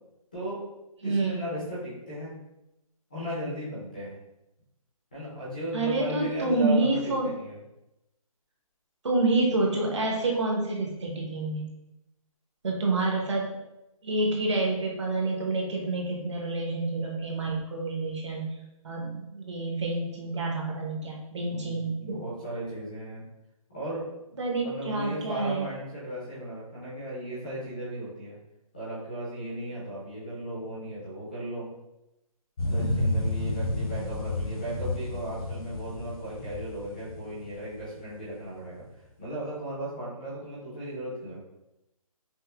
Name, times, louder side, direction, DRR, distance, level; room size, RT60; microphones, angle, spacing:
voice 1, 0.3-0.6 1.0-2.4 3.1-4.1 5.1-7.6 21.4-23.2 23.7-24.1 24.6-28.4 28.7-31.7 32.7-38.9 39.2-41.4, right 1 dB, 15° left, -9 dB, 0.5 m, -36 dB
voice 2, 1.0-1.5 5.7-7.3 9.0-11.7 12.6-13.6 14.0-18.6 18.8-22.2 24.4-25.7 32.7-33.0, right 2 dB, 50° right, -1 dB, 0.8 m, -28 dB
sound 1, 32.6-38.2 38.6-38.7, left 1 dB, 75° left, 0.8 m, -31 dB
5.3 x 2.0 x 2.2 m, 0.92 s
hypercardioid pair, 180°, 19 cm